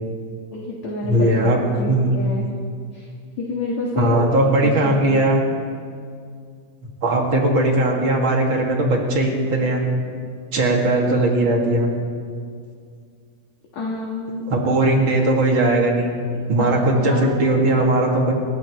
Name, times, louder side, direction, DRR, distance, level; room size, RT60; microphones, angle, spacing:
voice 1, 0.5-2.5 2.9-3.1 3.4-5.2 13.7-14.4 16.6-17.4, left 2 dB, 55° left, -3 dB, 2.6 m, -28 dB
voice 2, 1.0-1.6 1.8-2.2 4.0-5.4 7.0-9.9 10.5-11.9 14.5-16.2 16.5-18.3, right 1 dB, 40° right, -1 dB, 2.3 m, -19 dB
29.5 x 15.0 x 3.2 m, 2.2 s
omnidirectional pair, 4.4 m